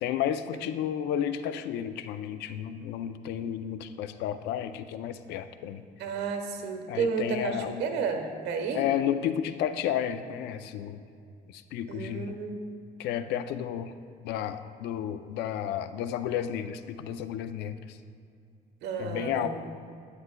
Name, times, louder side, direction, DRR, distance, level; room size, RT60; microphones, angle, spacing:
voice 1, 0.0-5.8 6.9-7.8 8.7-11.0 11.5-12.3 13.0-13.9 14.2-18.0 19.0-19.5, left 10 dB, 80° left, 11 dB, 0.5 m, -32 dB
voice 2, 6.0-8.9 11.9-12.5 18.8-19.5, right 5 dB, 85° right, 5 dB, 1.1 m, -31 dB
11.0 x 9.4 x 2.2 m, 2.4 s
cardioid pair, 110°, 17 cm